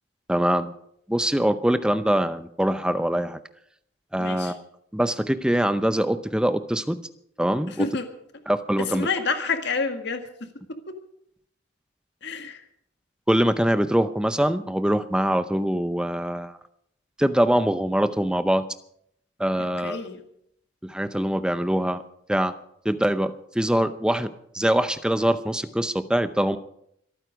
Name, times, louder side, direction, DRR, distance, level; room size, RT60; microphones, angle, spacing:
voice 1, 0.3-0.7 1.1-3.4 4.1-4.6 4.9-7.0 7.4-7.9 8.5-9.1 13.3-16.6 17.2-18.6 19.4-20.0 20.8-22.0 22.3-22.5 22.8-26.6, equal, 5° right, 11 dB, 0.6 m, -23 dB
voice 2, 4.2-4.6 7.7-8.1 8.8-10.2 10.9-11.0 12.2-12.6 19.6-20.2, left 4 dB, 55° left, 6 dB, 1.9 m, -29 dB
25.5 x 9.2 x 5.1 m, 0.71 s
head